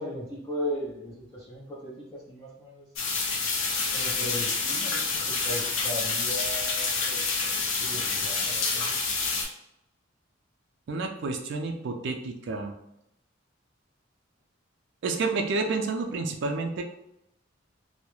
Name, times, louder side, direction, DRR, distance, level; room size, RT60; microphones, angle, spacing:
voice 1, 0.0-2.9 3.9-9.0, left 1 dB, 20° left, -8 dB, 0.6 m, -37 dB
sound 1, 3.0-9.4, left 4 dB, 80° left, 0.5 m, -28 dB
voice 2, 10.9-12.8 15.0-16.8, right 3 dB, 60° right, 4 dB, 0.4 m, -30 dB
2.3 x 2.0 x 3.0 m, 0.83 s
head